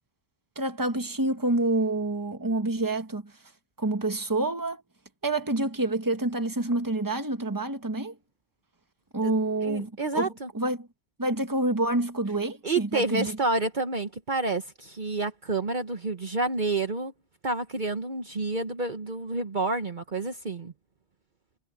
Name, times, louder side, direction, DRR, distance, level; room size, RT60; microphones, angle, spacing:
voice 1, 0.6-3.3 3.8-4.8 5.2-8.2 9.1-10.9 11.2-13.4, right 2 dB, 20° right, 1.6 m, -28 dB
voice 2, 9.6-10.5 12.6-17.1 17.4-20.7, right 3 dB, 45° right, 1.3 m, -29 dB
omnidirectional pair, 1.1 m